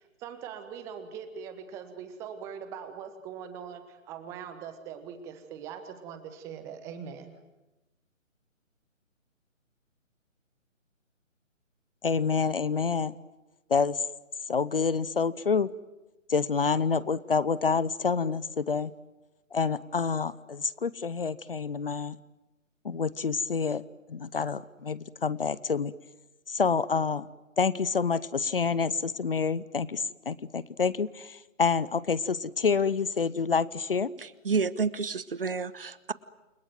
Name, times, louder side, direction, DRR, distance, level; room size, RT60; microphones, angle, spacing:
voice 1, 0.0-7.4, right 7 dB, 5° right, 9 dB, 1.2 m, -42 dB
voice 2, 12.0-13.1 13.7-14.0 14.5-15.7 16.3-18.9 19.5-22.2 22.8-23.8 24.1-25.9 26.5-27.3 27.6-34.1, left 5 dB, 45° left, 18 dB, 0.9 m, -28 dB
voice 3, 34.2-36.1, right 5 dB, 45° right, 17 dB, 1.1 m, -30 dB
29.0 x 21.0 x 9.2 m, 1.0 s
figure-of-eight pair, 145°, 39 cm